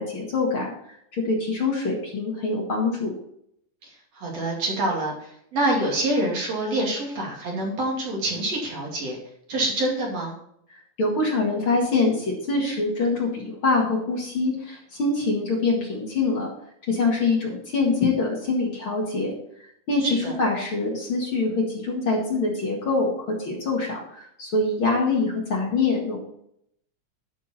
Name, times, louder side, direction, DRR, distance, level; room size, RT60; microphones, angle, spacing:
voice 1, 0.0-3.1 10.7-16.5 16.9-19.3 19.9-26.2, left 3 dB, 45° left, -2 dB, 2.5 m, -24 dB
voice 2, 4.1-9.2 9.5-10.3 20.0-20.3, right 1 dB, 55° right, -2 dB, 3.5 m, -26 dB
11.5 x 6.3 x 4.3 m, 0.71 s
omnidirectional pair, 3.5 m